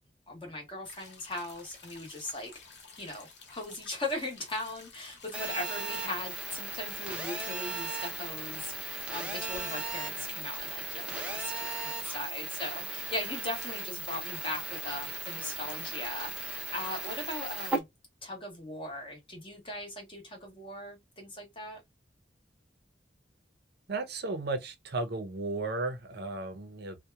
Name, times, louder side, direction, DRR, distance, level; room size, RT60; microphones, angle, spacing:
voice 1, 0.3-2.5 3.0-17.9 18.2-21.8, left 1 dB, 30° left, 1.1 m, -39 dB
sound 1, 0.8-17.8, left 4 dB, 70° left, 0.8 m, -52 dB
Telephone, 5.3-17.8, right 3 dB, 10° right, 0.6 m, -37 dB
voice 2, 23.9-27.0, right 3 dB, 65° right, 0.6 m, -34 dB
2.8 x 2.2 x 2.2 m
head